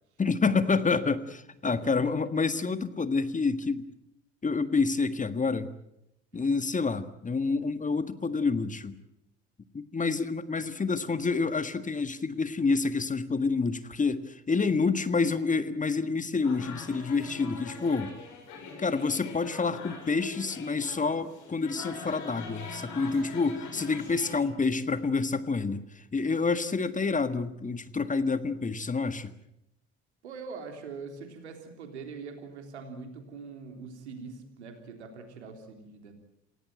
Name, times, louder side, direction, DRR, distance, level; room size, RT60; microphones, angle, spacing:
voice 1, 0.2-3.8 4.4-5.7 6.3-8.9 9.7-18.1 18.8-29.3, left 4 dB, 25° left, 12 dB, 1.6 m, -28 dB
voice 2, 1.6-2.1 6.3-6.5 30.2-36.1, right 4 dB, 80° right, 5 dB, 3.5 m, -43 dB
sound 1, 16.4-24.4, left 4 dB, 60° left, 7.1 m, -43 dB
27.5 x 17.0 x 9.1 m, 0.81 s
figure-of-eight pair, 55°, 33 cm